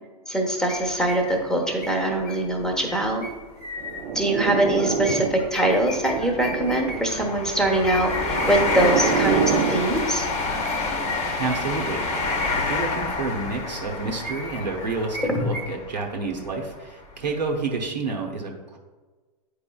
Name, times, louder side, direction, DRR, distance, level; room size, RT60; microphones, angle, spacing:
voice 1, 0.3-3.3 4.1-10.3 15.3-15.4, right 1 dB, 5° left, 2 dB, 1.0 m, -23 dB
sound 1, 0.6-4.1 4.7-7.3 7.8-9.4 10.2-13.3 13.7-15.6, left 2 dB, 80° left, 1.6 m, -37 dB
sound 2, 0.7-0.9 1.5-1.6 2.7-2.8 3.1-3.3 4.0-16.7 17.2-17.4, left 3 dB, 30° left, 1.0 m, -28 dB
sound 3, 3.8-5.6 6.0-7.1 8.0-9.9, right 7 dB, 50° right, 0.6 m, -27 dB
voice 2, 11.4-18.8, right 3 dB, 90° right, 0 dB, 0.9 m, -29 dB
8.6 x 4.7 x 2.3 m, 1.3 s
hypercardioid pair, 110°, 21 cm